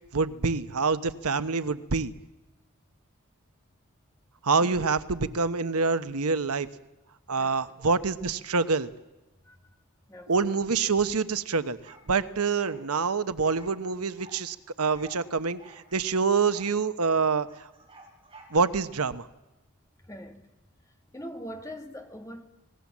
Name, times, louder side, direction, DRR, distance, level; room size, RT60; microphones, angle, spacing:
voice 1, 0.1-2.1 4.4-6.7 7.3-8.9 10.3-11.8 12.1-17.5 18.5-19.3, right 4 dB, 90° right, 1.0 m, -26 dB
voice 2, 9.4-9.7 10.1-10.6 20.1-20.5 21.1-22.4, equal, 15° left, 1.8 m, -42 dB
sound 1, 11.8-12.8 13.4-14.4 14.8-15.3 15.6-17.2 17.5-19.0, right 2 dB, 25° right, 5.2 m, -53 dB
27.0 x 19.0 x 7.3 m
head